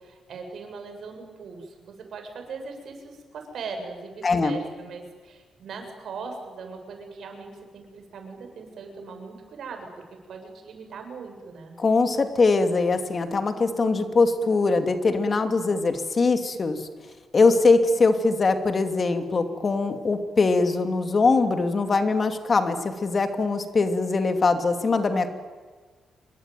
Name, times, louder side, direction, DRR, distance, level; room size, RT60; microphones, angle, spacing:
voice 1, 0.0-9.9 10.3-11.7, right 4 dB, 65° right, 4 dB, 7.3 m, -39 dB
voice 2, 4.2-4.6 11.8-16.9 17.3-25.3, left 3 dB, 35° left, 8 dB, 2.7 m, -22 dB
27.5 x 23.5 x 9.3 m, 1.5 s
cardioid pair, 140°, 0 cm